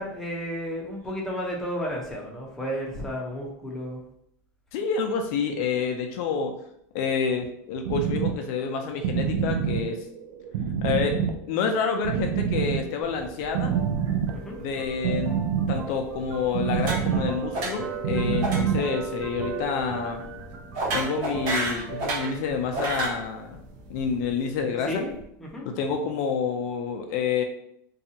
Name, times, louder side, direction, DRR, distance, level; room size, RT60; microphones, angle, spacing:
voice 1, 0.0-4.0 14.3-14.6 24.9-25.1 25.4-25.6, equal, 5° left, -3 dB, 0.7 m, -32 dB
voice 2, 4.7-6.6 6.9-10.0 10.8-11.2 11.5-13.7 14.6-15.4 15.7-20.2 20.9-23.6 23.9-25.0 25.7-27.4, left 5 dB, 60° left, 4 dB, 0.4 m, -28 dB
sound 1, 7.8-19.2, right 7 dB, 80° right, 0.4 m, -28 dB
sound 2, 13.0-24.6, right 4 dB, 50° right, 0.7 m, -39 dB
sound 3, 16.8-17.3 17.5-18.0 18.4-18.6 18.9-19.2 20.7-22.3 22.7-23.2, right 2 dB, 65° right, 1.1 m, -29 dB
2.6 x 2.3 x 2.7 m, 0.72 s
supercardioid pair, 125°, 10 cm